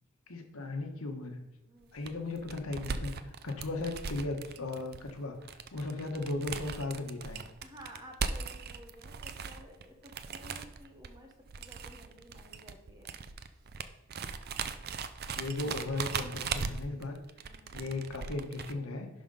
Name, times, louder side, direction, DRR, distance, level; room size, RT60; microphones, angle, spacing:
voice 1, 0.3-1.4 1.9-5.4 5.7-7.4 15.3-17.2 17.7-19.1, left 2 dB, 80° left, 4 dB, 1.3 m, -36 dB
voice 2, 1.7-2.0 7.6-13.2 17.4-17.8, equal, 20° right, 2 dB, 1.2 m, -53 dB
sound 1, 1.8-18.7, right 5 dB, 45° right, 0.5 m, -39 dB
11.0 x 3.8 x 5.4 m, 1.0 s
head